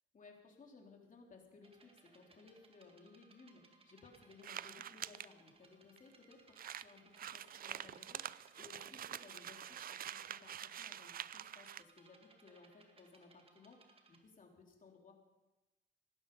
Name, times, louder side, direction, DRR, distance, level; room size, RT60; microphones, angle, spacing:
voice 1, 0.1-15.1, left 4 dB, 40° left, 1 dB, 3.5 m, -60 dB
sound 1, 1.6-14.2, right 3 dB, 30° right, 2.1 m, -67 dB
sound 2, 4.4-5.3 6.0-6.1 6.2-6.3 6.5-11.8, right 10 dB, 45° right, 0.5 m, -46 dB
17.5 x 12.5 x 5.5 m, 1.1 s
cardioid pair, 90°, 20 cm